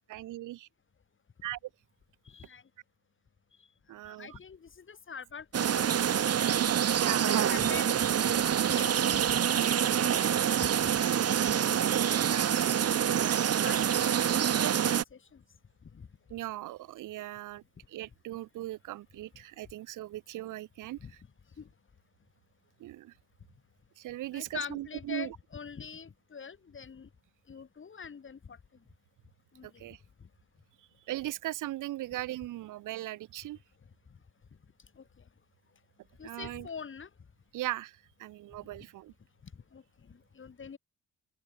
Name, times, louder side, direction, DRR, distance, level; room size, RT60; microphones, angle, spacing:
voice 1, 0.1-0.7 1.4-1.6 3.9-4.4 6.9-7.7 12.2-13.6 16.3-21.0 22.8-23.1 24.0-25.4 29.6-30.0 31.1-33.6 36.2-36.7 37.5-39.1, right 15 dB, 90° right, 3.5 m, -39 dB
voice 2, 2.2-2.6 3.6-6.0 7.2-8.2 8.7-9.5 9.8-10.9 11.4-11.5 13.6-14.3 14.7-15.4 15.8-16.1 21.0-21.1 21.6-21.7 24.3-27.1 27.5-28.8 29.5-29.8 30.2-30.3 34.9-35.3 36.2-37.1 39.4-40.8, left 6 dB, 40° left, 6.6 m, -45 dB
sound 1, 5.5-15.0, right 9 dB, 55° right, 2.0 m, -26 dB
open air
cardioid pair, 90°, 30 cm